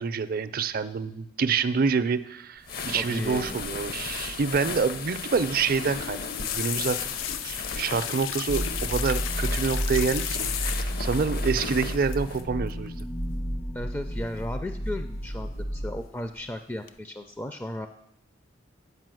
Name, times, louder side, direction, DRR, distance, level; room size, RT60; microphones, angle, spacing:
voice 1, 0.0-7.1 7.4-13.1, right 5 dB, 50° right, 12 dB, 0.5 m, -27 dB
sound 1, 2.6-12.4, left 5 dB, 50° left, 0.7 m, -36 dB
voice 2, 3.0-3.6 13.7-17.9, left 1 dB, 10° left, 8 dB, 0.4 m, -35 dB
sound 2, 5.6-11.1 12.1-12.4 12.7-13.0 14.2-14.8 15.1-15.7 16.1-16.5 16.9-17.0, left 10 dB, 90° left, 0.5 m, -34 dB
sound 3, 8.5-16.0, equal, 70° left, 1.2 m, -31 dB
8.2 x 5.3 x 7.7 m, 0.75 s
head